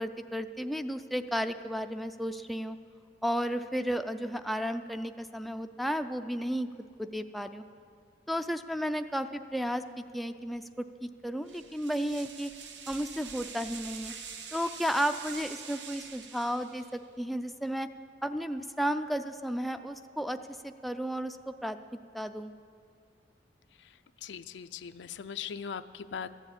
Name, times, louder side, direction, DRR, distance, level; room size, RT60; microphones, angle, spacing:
voice 1, 0.0-2.8 3.2-6.7 7.0-7.6 8.3-9.8 10.1-12.5 12.9-14.1 14.5-16.8 17.2-17.9 18.2-21.8 22.1-22.5, equal, ahead, 7 dB, 0.3 m, -33 dB
sound 1, 11.5-17.0, right 6 dB, 80° right, 0.9 m, -45 dB
voice 2, 24.2-26.3, left 7 dB, 85° left, 12 dB, 0.4 m, -39 dB
13.5 x 7.4 x 8.8 m, 2.2 s
head